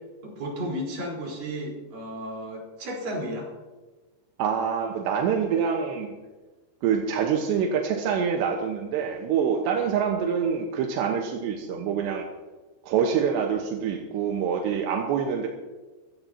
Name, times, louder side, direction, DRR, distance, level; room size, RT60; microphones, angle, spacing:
voice 1, 0.2-3.5, equal, 50° right, -2 dB, 5.7 m, -33 dB
voice 2, 4.4-6.1 6.8-12.2 12.8-15.5, right 7 dB, 85° right, 2 dB, 3.3 m, -26 dB
22.5 x 16.5 x 2.9 m, 1.2 s
omnidirectional pair, 4.9 m